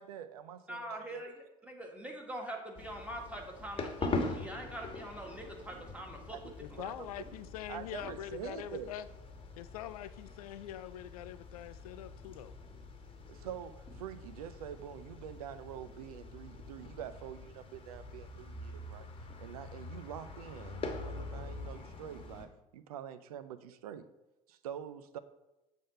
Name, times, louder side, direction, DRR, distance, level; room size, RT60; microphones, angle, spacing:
voice 1, 0.0-1.2 6.3-7.3 7.7-8.9 13.3-19.1 19.4-24.0 24.5-25.2, right 9 dB, 80° right, 12 dB, 0.5 m, -46 dB
voice 2, 0.7-6.4, right 1 dB, 5° right, 0 dB, 1.8 m, -43 dB
sound 1, 2.7-22.5, left 3 dB, 30° left, 1.2 m, -43 dB
voice 3, 6.6-9.1 9.6-12.5, left 11 dB, 75° left, 14 dB, 0.4 m, -44 dB
7.4 x 3.7 x 5.4 m, 0.97 s
hypercardioid pair, 65°, 19 cm